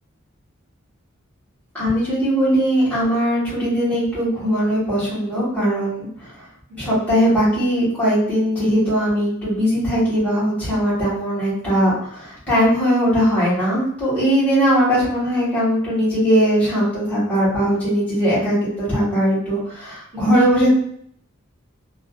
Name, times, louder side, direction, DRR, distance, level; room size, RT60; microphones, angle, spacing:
voice 1, 1.7-6.1 6.8-20.7, equal, 5° left, -11 dB, 1.2 m, -19 dB
2.4 x 2.3 x 2.3 m, 0.65 s
head